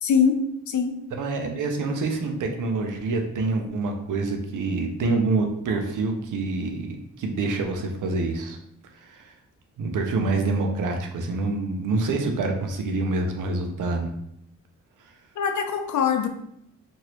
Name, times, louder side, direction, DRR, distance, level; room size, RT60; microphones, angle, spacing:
voice 1, 0.0-1.0 15.4-16.3, left 6 dB, 65° left, 6 dB, 0.5 m, -23 dB
voice 2, 1.1-8.6 9.0-9.3 9.8-14.1, right 3 dB, 75° right, 4 dB, 0.6 m, -26 dB
3.0 x 2.6 x 3.0 m, 0.75 s
cardioid pair, 60°, 32 cm